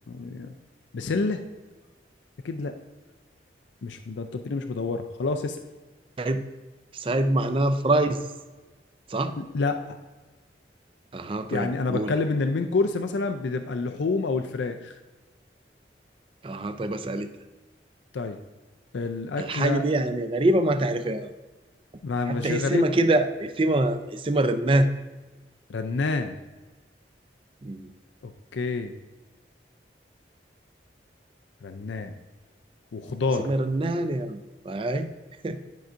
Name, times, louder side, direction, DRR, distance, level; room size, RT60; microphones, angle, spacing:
voice 1, 0.1-0.5 0.9-1.4 2.4-2.7 3.8-5.6 9.4-10.0 11.5-14.9 18.1-18.4 18.9-19.9 22.0-22.9 25.7-26.3 28.2-28.9 31.6-32.2 32.9-33.5, left 3 dB, 80° left, 6 dB, 0.4 m, -28 dB
voice 2, 6.9-8.2 9.1-9.4 11.1-12.1 16.4-17.3 19.4-21.3 22.3-24.9 27.6-27.9 33.4-35.1 35.4-35.6, right 1 dB, 30° right, 9 dB, 0.4 m, -25 dB
10.5 x 5.6 x 2.5 m, 1.2 s
head